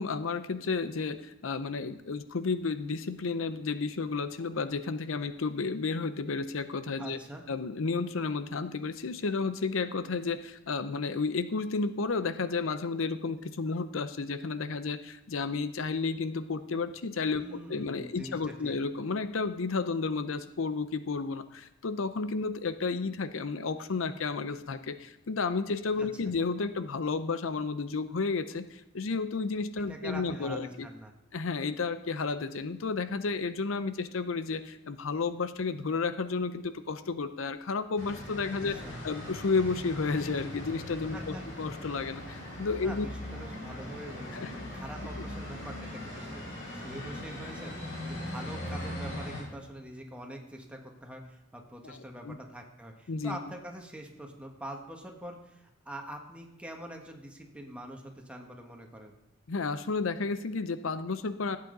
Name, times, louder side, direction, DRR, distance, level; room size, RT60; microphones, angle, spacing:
voice 1, 0.0-7.2 7.5-30.9 31.3-38.8 39.0-43.1 44.3-44.5 51.8-52.0 52.2-52.4 53.1-53.4 59.5-61.6, left 4 dB, 85° left, 12 dB, 0.6 m, -32 dB
voice 2, 7.0-7.4 17.4-18.7 26.0-26.1 29.9-31.1 38.6-39.2 41.1-41.4 42.8-59.1, right 1 dB, 5° right, 1 dB, 1.6 m, -44 dB
sound 1, 38.0-49.4, left 1 dB, 65° left, 5.1 m, -40 dB
16.5 x 8.5 x 4.0 m, 0.90 s
head